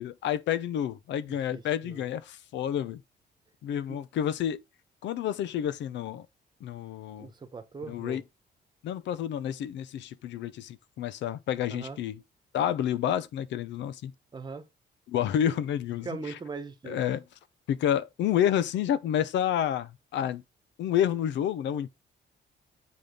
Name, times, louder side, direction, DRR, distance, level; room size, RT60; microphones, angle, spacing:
voice 1, 0.0-3.0 3.6-4.6 5.0-6.2 6.6-7.3 7.9-8.2 8.8-12.1 12.5-14.1 15.1-16.1 16.9-17.2 17.7-20.4 20.8-21.9, left 10 dB, 90° left, 0.7 m, -29 dB
voice 2, 1.3-2.1 7.2-8.2 11.7-12.0 14.3-14.6 16.0-17.0, right 4 dB, 25° right, 1.2 m, -40 dB
7.3 x 5.1 x 3.8 m
cardioid pair, 150°, 18 cm